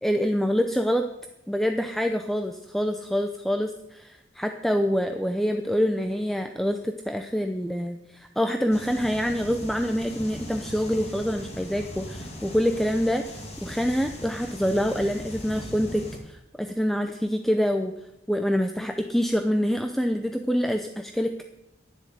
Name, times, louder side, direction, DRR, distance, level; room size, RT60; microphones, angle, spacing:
voice 1, 0.0-1.1 1.5-17.9 18.3-21.4, equal, ahead, 6 dB, 0.6 m, -26 dB
sound 1, 8.7-16.2, left 1 dB, 35° left, 2.3 m, -39 dB
11.5 x 10.0 x 7.8 m, 0.91 s
head